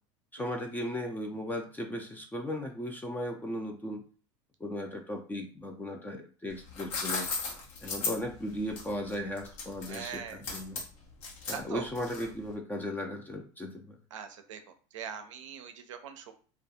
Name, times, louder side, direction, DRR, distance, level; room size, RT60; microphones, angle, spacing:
voice 1, 0.3-4.1 4.6-7.3 7.8-10.8 11.5-14.0, left 1 dB, 10° left, 2 dB, 0.4 m, -36 dB
sound 1, 6.5-12.5, left 4 dB, 80° left, 0.9 m, -36 dB
voice 2, 9.9-10.4 11.5-11.9 14.1-14.6 14.9-16.3, right 8 dB, 90° right, 8 dB, 0.4 m, -41 dB
2.3 x 2.2 x 2.7 m, 0.41 s
hypercardioid pair, 90°, 16 cm